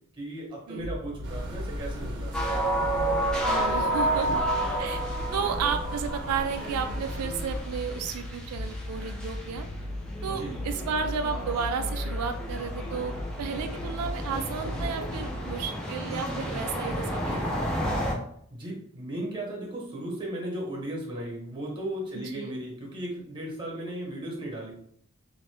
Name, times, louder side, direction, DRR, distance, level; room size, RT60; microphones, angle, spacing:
voice 1, 0.1-2.4 3.9-4.0 4.3-4.4 10.2-10.6 18.5-24.7, right 1 dB, 20° right, -2 dB, 0.9 m, -36 dB
sound 1, 0.8-15.6, left 1 dB, 75° left, 0.5 m, -36 dB
sound 2, 1.2-7.6, right 1 dB, 50° right, 0.6 m, -40 dB
sound 3, 2.3-18.1, right 1 dB, 5° left, 0.5 m, -31 dB
voice 2, 3.4-4.3 4.8-5.0 5.3-9.7 10.2-13.1 13.4-17.7 22.1-22.5, right 6 dB, 90° right, 7 dB, 0.3 m, -32 dB
2.6 x 2.5 x 3.3 m, 0.65 s
head